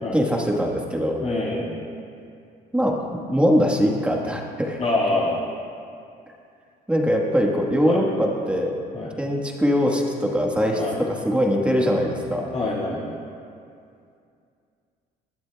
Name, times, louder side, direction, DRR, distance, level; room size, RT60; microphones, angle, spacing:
voice 1, 0.1-1.2 2.7-2.9 3.3-4.8 6.9-8.7 9.2-12.5, equal, 5° right, -1 dB, 1.4 m, -22 dB
voice 2, 1.2-1.8 4.8-5.5 7.8-8.0 8.9-9.1 10.8-11.0 12.5-13.2, left 2 dB, 40° left, -6 dB, 1.9 m, -25 dB
18.0 x 11.5 x 2.3 m, 2.4 s
cardioid pair, 110°, 17 cm